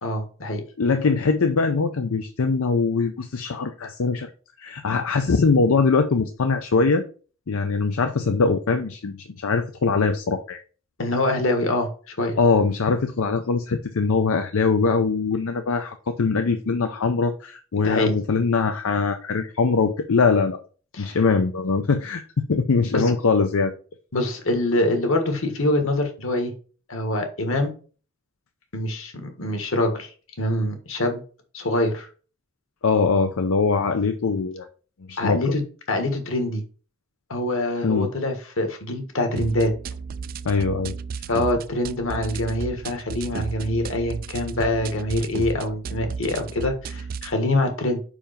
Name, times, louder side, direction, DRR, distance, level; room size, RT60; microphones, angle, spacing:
voice 1, 0.0-0.6 11.0-12.4 17.8-18.2 20.9-21.2 22.9-23.1 24.1-26.5 26.9-27.7 28.7-30.1 30.4-31.2 31.5-32.1 35.2-36.6 37.3-39.7 41.3-48.0, left 1 dB, 70° left, 5 dB, 1.6 m, -25 dB
voice 2, 0.8-4.3 4.6-7.0 7.5-10.6 12.4-20.6 21.0-22.2 22.5-23.7 32.8-34.7 35.1-35.4 37.8-38.1 40.4-41.0, left 4 dB, 85° left, 7 dB, 0.6 m, -22 dB
sound 1, 39.4-47.4, right 5 dB, 45° right, 0.3 m, -34 dB
5.1 x 5.0 x 5.1 m, 0.39 s
head